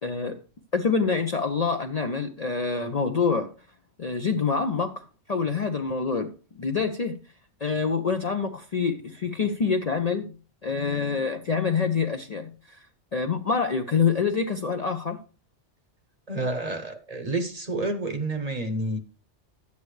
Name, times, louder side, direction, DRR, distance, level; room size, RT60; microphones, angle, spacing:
voice 1, 0.0-0.4 0.7-3.5 4.0-6.3 6.6-7.2 7.6-10.4 10.6-12.8 13.1-15.2, left 5 dB, 45° left, 0.5 m, -26 dB
voice 2, 16.3-19.0, right 2 dB, 35° right, 0.8 m, -29 dB
10.5 x 8.4 x 3.1 m
omnidirectional pair, 1.2 m